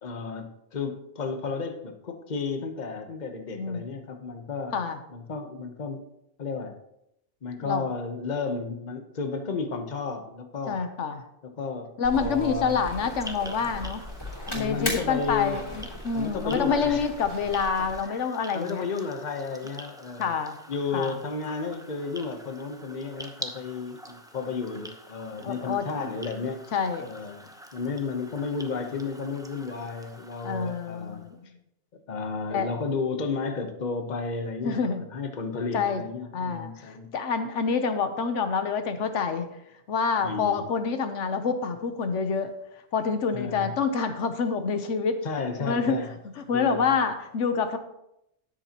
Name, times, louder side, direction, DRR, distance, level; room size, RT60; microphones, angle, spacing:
voice 1, 0.0-6.0 6.4-6.8 7.4-10.8 11.4-12.8 14.5-15.6 16.1-17.0 17.8-18.3 18.5-20.3 20.7-26.6 27.0-27.4 27.7-31.3 32.1-37.1 40.2-40.6 43.3-43.7 45.2-46.1 46.5-46.9, left 4 dB, 40° left, 6 dB, 1.1 m, -33 dB
voice 2, 3.6-3.9 4.7-5.0 7.6-7.8 10.7-11.2 12.0-14.0 14.5-18.8 20.2-20.6 20.9-21.2 25.4-25.8 26.7-27.1 30.4-31.4 32.5-32.7 34.6-35.0 35.7-36.0 36.3-39.5 39.9-42.5 42.9-45.2 45.6-46.1 46.4-47.8, left 5 dB, 85° left, 8 dB, 1.2 m, -27 dB
sound 1, 12.0-18.0, left 1 dB, 25° left, 2.9 m, -37 dB
sound 2, 12.8-31.3, equal, 5° right, 0.7 m, -46 dB
13.0 x 10.0 x 2.9 m, 0.82 s
omnidirectional pair, 1.2 m